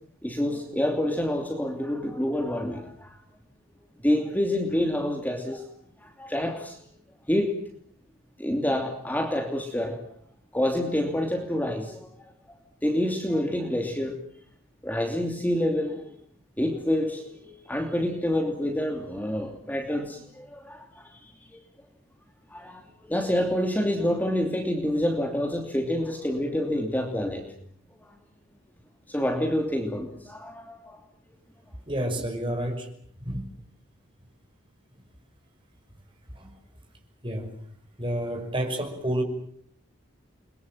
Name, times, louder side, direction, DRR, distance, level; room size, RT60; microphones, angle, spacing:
voice 1, 0.2-3.2 4.0-5.7 6.0-6.8 7.3-7.6 8.4-10.0 10.5-12.3 12.8-14.2 14.8-16.1 16.6-21.6 22.5-27.5 29.1-31.0, left 1 dB, 10° left, 3 dB, 2.8 m, -27 dB
voice 2, 31.9-32.9 33.2-33.5 36.3-36.5 37.2-37.5 38.0-39.2, right 1 dB, 25° right, 4 dB, 5.6 m, -29 dB
30.0 x 22.5 x 7.4 m, 0.62 s
head